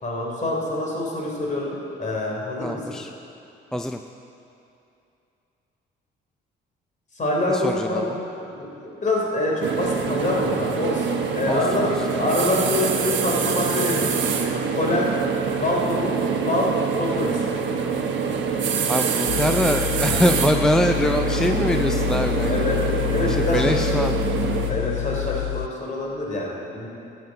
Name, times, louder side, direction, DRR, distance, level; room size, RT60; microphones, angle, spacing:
voice 1, 0.0-3.0 7.1-11.1 11.3-14.2 14.7-15.2 15.6-17.4 22.5-24.0 24.7-26.9, left 2 dB, 40° left, -2 dB, 3.6 m, -26 dB
voice 2, 2.6-3.1 3.7-4.0 7.5-8.1 11.5-11.9 18.9-22.6 23.3-24.1, equal, 5° left, 5 dB, 0.4 m, -23 dB
sound 1, 9.6-24.7, right 6 dB, 70° right, 1.3 m, -25 dB
sound 2, 19.3-25.7, left 16 dB, 90° left, 0.4 m, -27 dB
12.5 x 7.8 x 7.7 m, 2.7 s
cardioid pair, 90°, 20 cm